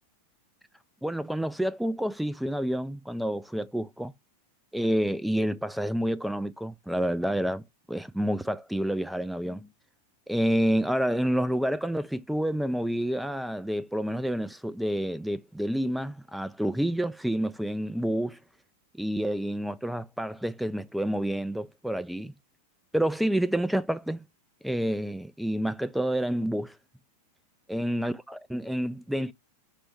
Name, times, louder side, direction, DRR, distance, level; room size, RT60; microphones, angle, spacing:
voice 1, 1.0-4.1 4.7-9.7 10.3-18.4 19.0-22.3 22.9-24.2 24.6-26.7 27.7-29.3, equal, ahead, 0.3 m, -29 dB
5.1 x 2.2 x 4.5 m
figure-of-eight pair, 90°, 0 cm